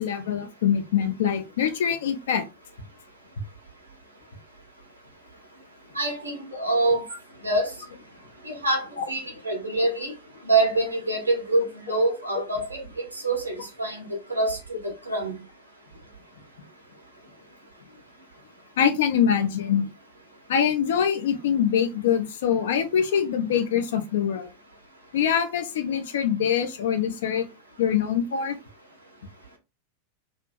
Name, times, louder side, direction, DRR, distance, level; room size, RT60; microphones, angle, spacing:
voice 1, 0.0-2.5 9.0-9.1 18.8-19.9 20.5-24.5 25.1-27.5 27.8-28.6, left 8 dB, 60° left, 0.5 m, -24 dB
voice 2, 5.9-7.0 7.4-7.7 8.4-10.1 10.4-12.8 13.1-14.6 14.8-15.3, right 2 dB, 80° right, 0.9 m, -25 dB
2.6 x 2.6 x 2.2 m
figure-of-eight pair, 90°, 0 cm